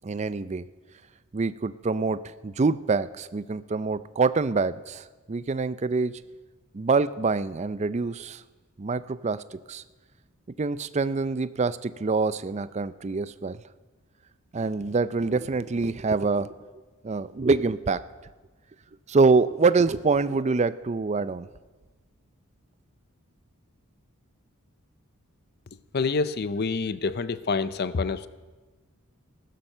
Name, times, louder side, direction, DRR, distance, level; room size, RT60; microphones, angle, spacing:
voice 1, 0.0-0.6 1.3-6.2 6.7-8.4 8.8-9.8 10.6-13.6 14.5-16.5 17.0-18.0 19.1-21.5, right 4 dB, 30° right, 14 dB, 0.4 m, -25 dB
voice 2, 25.9-28.3, left 4 dB, 45° left, 15 dB, 0.5 m, -27 dB
15.5 x 11.5 x 6.6 m, 1.3 s
head